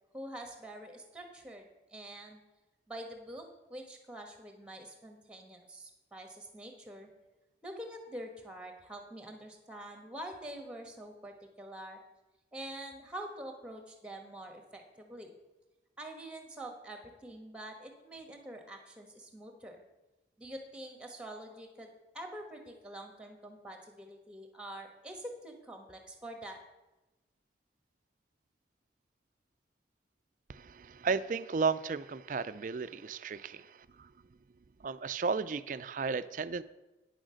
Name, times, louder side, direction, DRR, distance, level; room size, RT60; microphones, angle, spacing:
voice 1, 0.1-2.4 2.9-7.1 7.6-12.0 12.5-15.3 16.0-19.8 20.4-26.6, right 1 dB, 5° right, 4 dB, 1.4 m, -46 dB
voice 2, 30.5-34.1 34.8-36.6, right 5 dB, 45° right, 15 dB, 0.4 m, -34 dB
9.8 x 6.4 x 6.3 m, 1.0 s
head